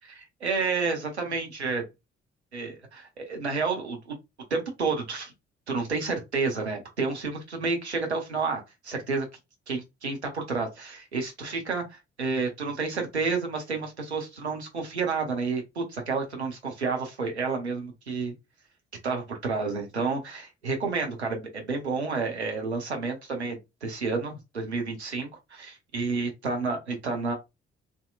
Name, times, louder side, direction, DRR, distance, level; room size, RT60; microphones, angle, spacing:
voice 1, 0.4-1.8 2.5-4.1 4.5-5.3 5.7-9.3 9.7-18.3 19.0-27.3, right 4 dB, 85° right, 0.7 m, -30 dB
3.5 x 2.8 x 2.2 m
figure-of-eight pair, 40°, 33 cm